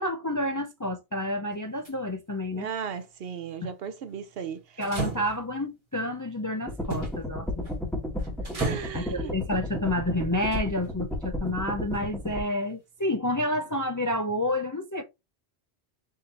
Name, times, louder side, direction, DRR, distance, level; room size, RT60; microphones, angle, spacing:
voice 1, 0.0-2.7 3.6-3.7 4.8-7.7 8.9-15.0, left 1 dB, 25° left, 0.4 m, -29 dB
sound 1, 1.5-1.9 4.8-5.6 6.9-7.2 7.6-7.9 8.2-9.0 10.4-10.9 11.9-12.0, right 3 dB, 35° right, 1.5 m, -34 dB
voice 2, 2.5-4.8 5.2-5.3 8.5-9.4, right 7 dB, 65° right, 0.9 m, -36 dB
sound 2, 6.7-12.4, left 1 dB, ahead, 1.2 m, -33 dB
4.9 x 2.7 x 3.9 m
omnidirectional pair, 1.1 m